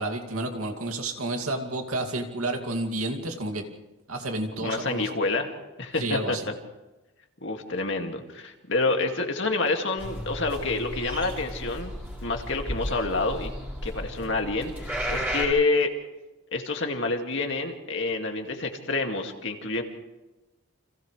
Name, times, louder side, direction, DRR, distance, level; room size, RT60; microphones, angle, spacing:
voice 1, 0.0-3.7 4.1-5.1 6.0-6.5, right 2 dB, 85° right, 4 dB, 2.5 m, -30 dB
voice 2, 4.6-5.5 5.8-6.5 7.4-11.9 12.2-13.5 13.8-15.9 16.5-19.8, left 3 dB, 60° left, 3 dB, 2.2 m, -28 dB
sound 1, 10.0-15.4, equal, 10° right, 4.8 m, -34 dB
30.0 x 26.5 x 3.3 m, 1.1 s
head